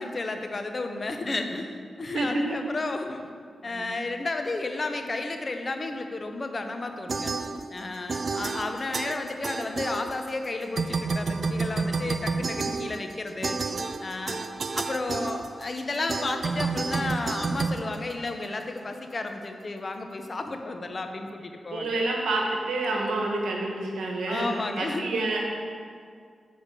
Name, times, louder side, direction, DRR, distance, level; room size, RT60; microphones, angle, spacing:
voice 1, 0.0-3.2 3.6-7.3 7.7-13.6 14.0-14.4 14.7-22.0 24.3-25.1, left 2 dB, 45° left, 6 dB, 0.9 m, -32 dB
voice 2, 2.1-2.4 3.6-3.9 21.7-25.4, right 2 dB, 85° right, -1 dB, 1.3 m, -28 dB
sound 1, 7.1-7.8 8.1-10.5 10.7-18.6, right 4 dB, 60° right, 0.4 m, -30 dB
7.2 x 5.0 x 6.7 m, 2.1 s
cardioid pair, 50°, 0 cm